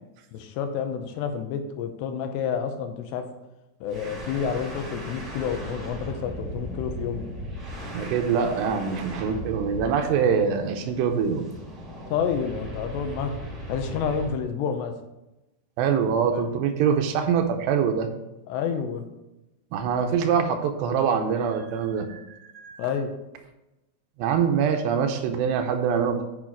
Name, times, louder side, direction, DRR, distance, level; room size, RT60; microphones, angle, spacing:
voice 1, 0.3-3.3 3.8-7.3 12.1-13.4 13.7-14.9 16.0-16.5 18.5-19.0 22.8-23.1, left 7 dB, 80° left, 7 dB, 2.9 m, -29 dB
sound 1, 3.9-14.4, equal, 25° right, 1.8 m, -37 dB
voice 2, 7.9-11.4 15.8-18.1 19.7-22.9 24.2-26.2, right 7 dB, 80° right, 5 dB, 2.8 m, -24 dB
8.5 x 5.9 x 4.5 m, 0.98 s
omnidirectional pair, 5.1 m